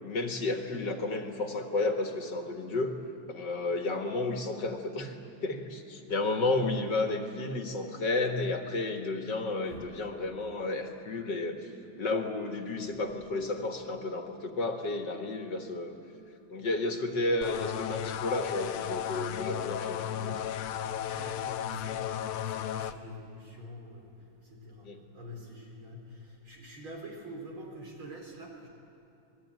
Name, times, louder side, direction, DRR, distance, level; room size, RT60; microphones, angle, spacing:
voice 1, 0.0-3.0 3.3-5.1 5.4-11.6 12.0-15.9 16.5-20.4 24.8-25.0, left 2 dB, 55° left, 4 dB, 2.3 m, -32 dB
sound 1, 17.4-22.9, left 10 dB, 90° left, 1.7 m, -34 dB
voice 2, 20.1-24.1 24.4-28.7, equal, 70° right, 0 dB, 5.2 m, -46 dB
27.5 x 20.5 x 9.3 m, 2.8 s
omnidirectional pair, 2.4 m